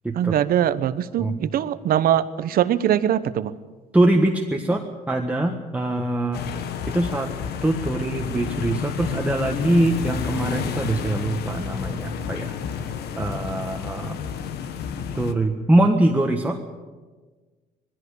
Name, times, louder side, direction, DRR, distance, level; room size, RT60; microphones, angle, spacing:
voice 1, 0.2-3.5, right 10 dB, 60° right, 14 dB, 1.0 m, -22 dB
voice 2, 3.9-6.6 6.9-7.3 7.6-12.5 13.2-14.2 15.1-16.6, right 1 dB, 10° right, 2 dB, 1.5 m, -23 dB
sound 1, 6.3-15.3, left 7 dB, 70° left, 1.4 m, -30 dB
20.5 x 15.5 x 8.4 m, 1.3 s
cardioid pair, 110°, 17 cm